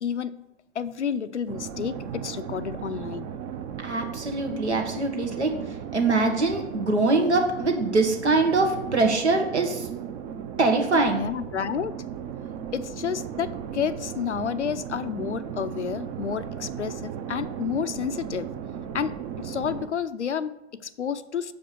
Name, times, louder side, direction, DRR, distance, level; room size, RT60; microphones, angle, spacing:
voice 1, 0.0-0.3 0.7-3.3 11.1-11.9 12.7-18.5 18.9-21.5, left 7 dB, 85° left, 13 dB, 0.6 m, -30 dB
sound 1, 1.5-19.9, right 8 dB, 40° right, 0.9 m, -36 dB
voice 2, 3.8-9.9 10.6-11.2, right 3 dB, 80° right, 4 dB, 1.4 m, -23 dB
6.6 x 5.2 x 6.7 m, 0.92 s
figure-of-eight pair, 90°, 34 cm